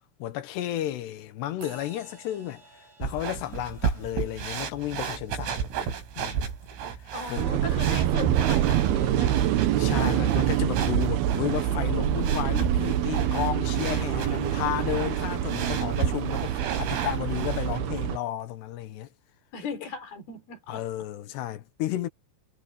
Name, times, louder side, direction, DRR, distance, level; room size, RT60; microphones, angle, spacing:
voice 1, 0.2-5.7 6.2-6.5 7.0-7.6 9.8-19.1 20.7-22.1, left 13 dB, 70° left, 2.9 m, -33 dB
sound 1, 1.6-9.5, right 4 dB, 55° right, 9.3 m, -55 dB
sound 2, 3.0-17.8, right 7 dB, 90° right, 7.3 m, -34 dB
voice 2, 7.1-9.5 9.9-10.2 19.5-20.8, left 4 dB, 50° left, 5.4 m, -37 dB
sound 3, 7.4-18.2, right 11 dB, 70° right, 2.5 m, -26 dB
omnidirectional pair, 5.7 m